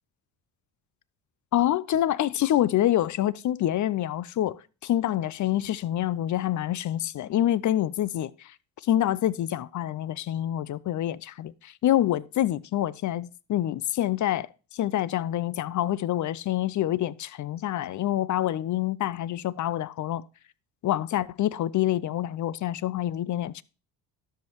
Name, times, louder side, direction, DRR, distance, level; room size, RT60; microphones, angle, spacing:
voice 1, 1.5-8.3 8.8-14.5 14.7-20.2 20.8-23.6, left 12 dB, 40° left, 0.5 m, -26 dB
12.5 x 5.6 x 3.0 m
hypercardioid pair, 55°, 49 cm